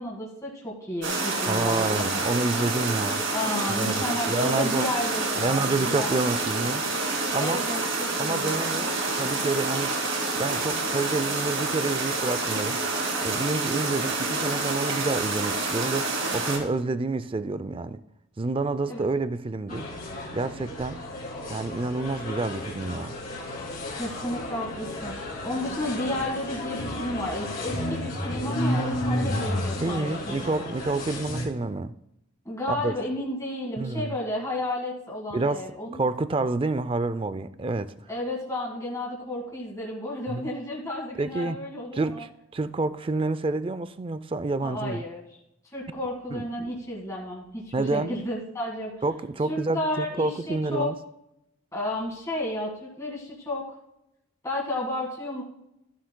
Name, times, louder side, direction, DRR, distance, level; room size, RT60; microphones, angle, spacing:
voice 1, 0.0-2.1 3.3-6.1 7.4-8.5 18.9-19.1 23.9-30.4 32.4-36.0 38.1-42.2 44.6-45.2 45.6-48.9 49.5-50.9 51.7-53.6 54.4-55.4, left 1 dB, 15° left, 1.7 m, -32 dB
sound 1, 1.0-16.6, right 3 dB, 60° right, 2.6 m, -28 dB
voice 2, 1.4-3.2 3.7-4.9 5.4-6.8 7.3-7.6 8.2-10.0 10.4-12.8 13.2-18.0 18.4-19.9 20.3-21.0 21.5-23.2 29.8-31.9 32.7-32.9 33.8-34.2 35.3-35.6 36.0-37.9 40.3-40.5 41.2-41.6 41.9-45.0 46.3-46.4 47.7-48.2 49.0-51.0, right 3 dB, 25° right, 0.3 m, -28 dB
sound 2, 19.7-31.5, left 1 dB, 40° left, 2.5 m, -32 dB
15.0 x 11.5 x 2.2 m
head